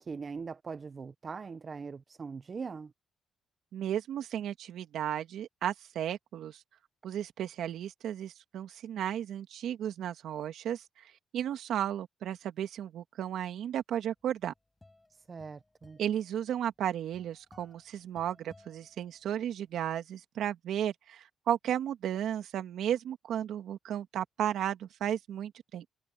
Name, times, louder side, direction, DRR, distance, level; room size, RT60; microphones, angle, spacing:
voice 1, 0.0-2.9 15.3-16.0, right 5 dB, 40° right, 0.8 m, -41 dB
voice 2, 3.7-6.6 7.0-14.5 16.0-25.8, right 10 dB, 75° right, 2.2 m, -34 dB
sound 1, 14.2-19.6, left 2 dB, 15° left, 7.7 m, -61 dB
cardioid pair, 90°, 0 cm